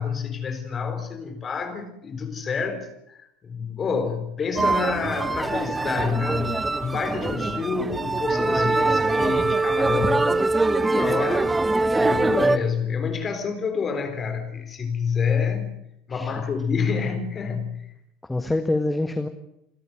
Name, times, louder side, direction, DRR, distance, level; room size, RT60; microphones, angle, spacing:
voice 1, 0.0-10.3 10.8-11.6 12.0-15.7 16.1-17.8, left 5 dB, 30° left, 7 dB, 4.0 m, -28 dB
sound 1, 4.6-12.6, right 2 dB, 15° right, 1.0 m, -23 dB
voice 2, 7.1-7.6 16.1-16.3 18.2-19.3, left 2 dB, 10° left, 8 dB, 1.6 m, -27 dB
28.5 x 13.0 x 9.3 m, 0.80 s
figure-of-eight pair, 70°, 0 cm